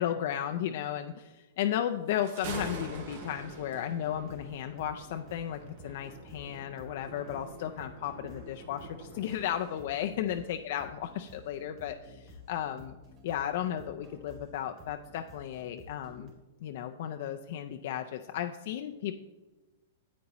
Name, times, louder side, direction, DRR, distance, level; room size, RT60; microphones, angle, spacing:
voice 1, 0.0-13.0 13.2-16.3 16.6-19.2, left 10 dB, 55° left, 6 dB, 0.4 m, -34 dB
Thunder, 2.1-9.3, right 2 dB, 65° right, 2.3 m, -45 dB
sound 1, 4.0-16.3, left 1 dB, 30° right, 2.3 m, -53 dB
9.3 x 8.3 x 2.9 m, 1.1 s
hypercardioid pair, 150°, 0 cm